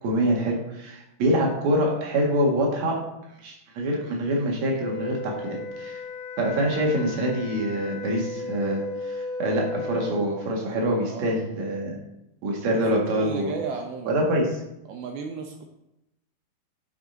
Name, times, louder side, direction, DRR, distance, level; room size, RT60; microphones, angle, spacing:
voice 1, 0.0-3.0 3.4-6.0 6.4-11.9 12.4-13.5 14.1-14.6, right 1 dB, 55° right, -1 dB, 2.6 m, -25 dB
Wind instrument woodwind instrument, 4.8-10.3, left 2 dB, 85° left, 2.7 m, -35 dB
voice 2, 12.7-14.3 14.9-15.6, right 5 dB, 80° right, 3 dB, 2.6 m, -34 dB
12.0 x 5.0 x 4.0 m, 0.85 s
omnidirectional pair, 4.4 m